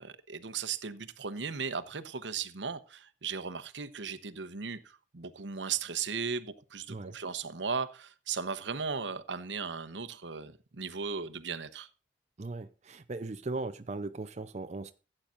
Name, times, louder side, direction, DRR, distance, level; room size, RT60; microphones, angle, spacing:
voice 1, 0.0-11.9, right 5 dB, 85° right, 0.9 m, -37 dB
voice 2, 12.4-14.9, right 3 dB, 40° right, 0.6 m, -38 dB
16.0 x 8.9 x 2.5 m
head